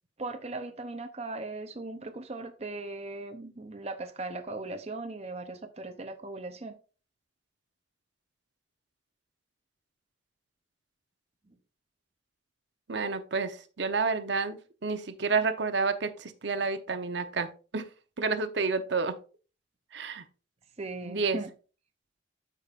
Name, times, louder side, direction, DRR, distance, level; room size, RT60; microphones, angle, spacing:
voice 1, 0.2-6.7 20.8-21.5, right 2 dB, 35° right, 0.7 m, -38 dB
voice 2, 12.9-17.5 17.7-17.8 18.2-19.2 19.9-20.2 21.0-21.4, right 4 dB, 65° right, 0.8 m, -30 dB
12.5 x 5.1 x 2.5 m
head